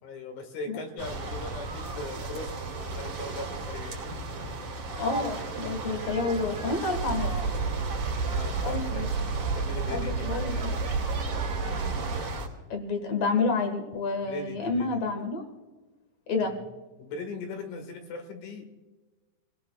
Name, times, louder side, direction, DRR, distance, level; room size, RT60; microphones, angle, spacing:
voice 1, 0.0-4.0 5.8-6.5 8.2-9.0 9.6-11.1 14.2-15.0 16.4-16.7 17.0-18.7, left 3 dB, 85° left, 4 dB, 4.2 m, -40 dB
sound 1, 1.0-12.5, right 2 dB, 45° right, 2.2 m, -35 dB
voice 2, 5.0-7.3 8.6-9.1 9.9-10.7 12.7-15.5 16.3-16.5, left 3 dB, 60° left, 4 dB, 1.7 m, -29 dB
sound 2, 7.0-12.2, right 4 dB, 70° right, 3.9 m, -31 dB
28.0 x 18.0 x 2.4 m, 1.2 s
omnidirectional pair, 5.3 m